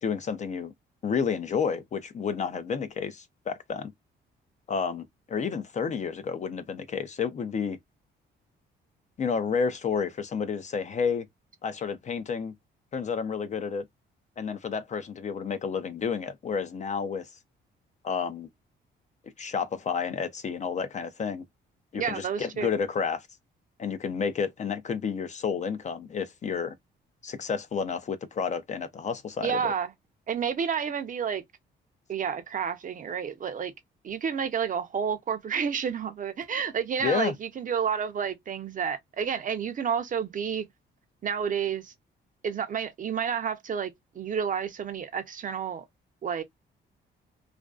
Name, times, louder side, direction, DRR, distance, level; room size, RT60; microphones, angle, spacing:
voice 1, 0.0-0.7 1.0-3.9 4.7-7.8 9.2-11.3 11.6-12.5 12.9-13.8 14.4-17.3 18.0-18.5 19.4-21.4 21.9-23.3 23.8-26.7 27.2-29.7 37.0-37.3, left 6 dB, 35° left, 0.4 m, -30 dB
voice 2, 21.9-22.7 29.4-29.9 30.3-31.4 32.1-33.7 34.0-40.7 41.2-41.9 42.4-45.9 46.2-46.4, right 7 dB, 40° right, 0.5 m, -30 dB
2.4 x 2.2 x 2.2 m
cardioid pair, 90°, 20 cm